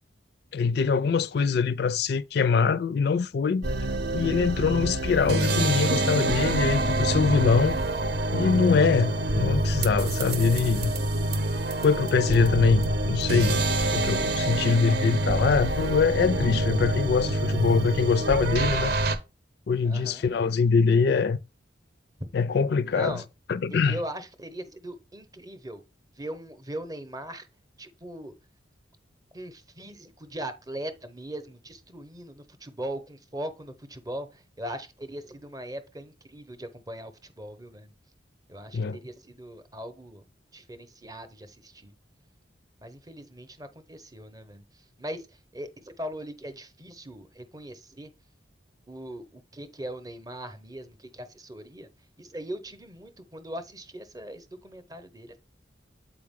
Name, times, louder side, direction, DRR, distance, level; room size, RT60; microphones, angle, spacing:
voice 1, 0.5-3.7 4.1-7.8 8.3-10.9 11.8-13.6 13.9-18.9 19.7-21.4 22.3-23.2 23.5-24.0 38.7-39.0, left 5 dB, 60° left, 0.4 m, -23 dB
sound 1, 3.6-19.2, right 2 dB, 55° right, 0.8 m, -26 dB
voice 2, 19.8-20.3 22.2-22.3 22.9-23.2 23.7-25.8 26.2-27.5 27.8-28.3 29.3-37.9 38.5-40.2 40.5-41.9 42.8-44.6 45.0-45.3 45.5-48.1 48.9-51.9 52.2-55.4, right 1 dB, 20° right, 0.8 m, -39 dB
7.9 x 4.8 x 3.6 m
head